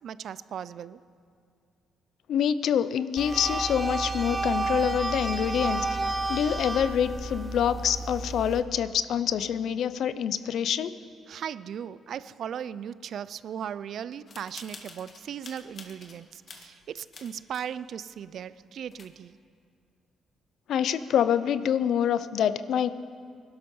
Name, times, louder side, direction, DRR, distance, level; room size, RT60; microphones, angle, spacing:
voice 1, 0.0-1.0 11.3-19.4, right 8 dB, 65° right, 17 dB, 0.4 m, -37 dB
voice 2, 2.3-5.9 6.3-10.9 20.7-22.9, left 9 dB, 70° left, 14 dB, 0.6 m, -26 dB
sound 1, 3.2-8.6, right 2 dB, 10° right, 1.1 m, -31 dB
sound 2, 14.3-16.2 16.5-17.7 18.1-18.2 18.6-18.7 18.9-19.4, left 4 dB, 45° left, 1.7 m, -47 dB
21.0 x 12.0 x 5.5 m, 2.4 s
cardioid pair, 90°, 0 cm